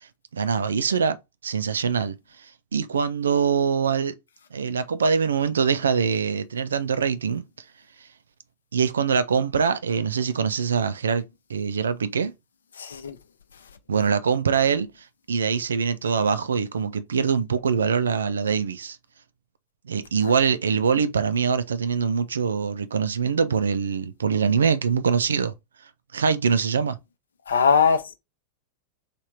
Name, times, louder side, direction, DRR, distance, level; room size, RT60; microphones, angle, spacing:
voice 1, 0.3-1.2 1.4-2.2 2.7-4.2 4.5-7.4 8.7-11.2 11.5-12.3 13.9-14.9 15.3-19.0 19.9-25.5 26.1-27.0, right 6 dB, 70° right, 0.4 m, -23 dB
voice 2, 12.8-13.2 20.2-20.3 27.5-28.1, left 6 dB, 70° left, 0.6 m, -21 dB
3.4 x 2.8 x 4.4 m
figure-of-eight pair, 90°, 0 cm